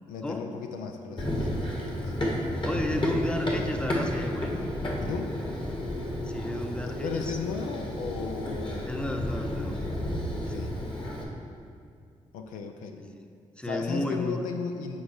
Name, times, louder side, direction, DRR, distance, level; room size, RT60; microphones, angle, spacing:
voice 1, 0.1-2.1 5.0-5.3 6.8-9.0 10.3-10.8 12.3-13.0 13.6-15.0, left 5 dB, 90° left, 4 dB, 0.5 m, -35 dB
Run, 1.2-11.2, left 1 dB, 35° left, 1.7 m, -32 dB
voice 2, 2.6-4.6 6.2-7.3 8.9-9.8 10.5-10.7 13.0-13.2 13.6-14.5, left 1 dB, 5° left, 4 dB, 0.8 m, -33 dB
8.7 x 4.0 x 4.7 m, 2.3 s
supercardioid pair, 45°, 14 cm